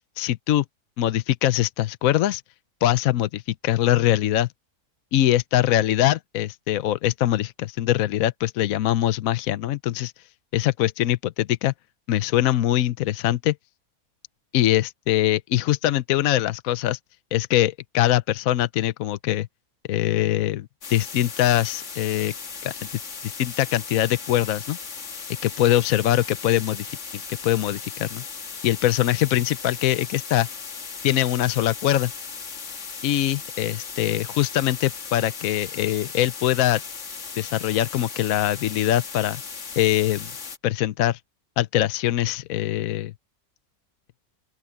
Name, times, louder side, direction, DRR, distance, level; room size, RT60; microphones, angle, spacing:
voice 1, 0.2-0.6 1.0-2.4 2.8-4.5 5.1-10.1 10.5-11.7 12.1-13.6 14.5-17.0 17.3-19.5 19.9-22.3 22.6-22.7 23.2-24.8 25.4-26.9 27.4-28.2 28.6-30.5 31.0-32.1 33.0-36.8 37.4-39.4 39.8-40.3 40.6-41.2 41.6-43.1, left 13 dB, 70° left, 1.1 m, -22 dB
sound 1, 20.8-40.6, left 5 dB, 55° left, 1.8 m, -37 dB
open air
omnidirectional pair, 1.6 m